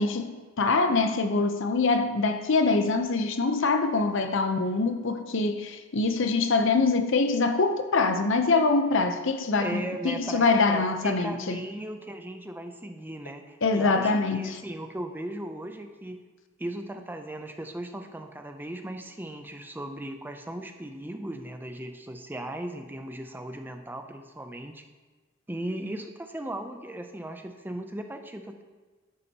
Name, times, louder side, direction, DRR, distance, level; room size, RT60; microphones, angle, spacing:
voice 1, 0.0-11.6 13.6-14.6, left 3 dB, 65° left, 0.7 m, -24 dB
voice 2, 9.6-16.2 16.6-24.9 25.5-28.6, right 1 dB, 10° right, 0.5 m, -37 dB
11.0 x 8.4 x 2.9 m
head